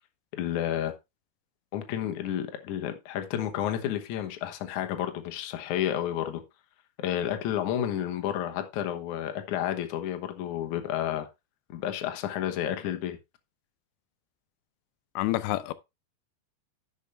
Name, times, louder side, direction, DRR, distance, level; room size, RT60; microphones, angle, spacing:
voice 1, 0.3-0.9 1.7-6.4 7.0-11.3 11.7-13.2, left 11 dB, 70° left, 2.0 m, -31 dB
voice 2, 15.2-15.7, left 16 dB, 85° left, 2.9 m, -28 dB
11.0 x 6.8 x 3.4 m
omnidirectional pair, 4.9 m